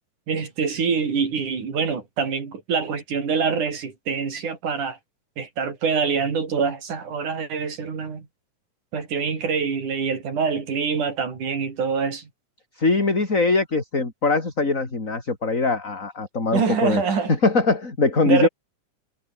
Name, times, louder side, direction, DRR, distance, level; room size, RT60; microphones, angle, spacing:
voice 1, 0.3-5.0 5.4-8.3 8.9-12.3 16.5-17.3 18.3-18.5, right 5 dB, 70° right, 5.7 m, -25 dB
voice 2, 12.8-17.0 17.3-18.5, left 3 dB, 25° left, 4.3 m, -22 dB
omnidirectional pair, 3.6 m